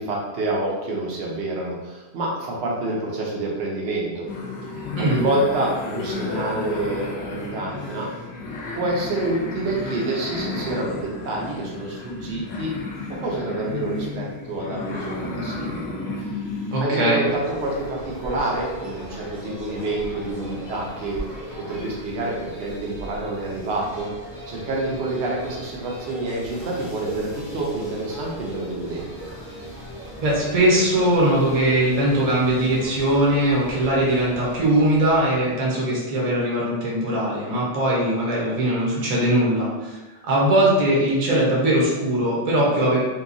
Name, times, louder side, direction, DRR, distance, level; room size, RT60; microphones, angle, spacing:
voice 1, 0.0-4.2 5.0-8.1 8.7-12.7 13.1-15.9 16.8-21.2 21.7-24.1 24.5-29.3, right 2 dB, 80° right, -2 dB, 0.9 m, -27 dB
sound 1, 4.3-16.8, left 3 dB, 70° left, 0.8 m, -32 dB
voice 2, 16.7-17.2 30.2-40.0 40.3-43.0, right 1 dB, 40° right, -5 dB, 0.7 m, -20 dB
sound 2, 17.3-35.6, equal, ahead, 0.8 m, -38 dB
2.8 x 2.2 x 2.5 m, 1.1 s
omnidirectional pair, 1.1 m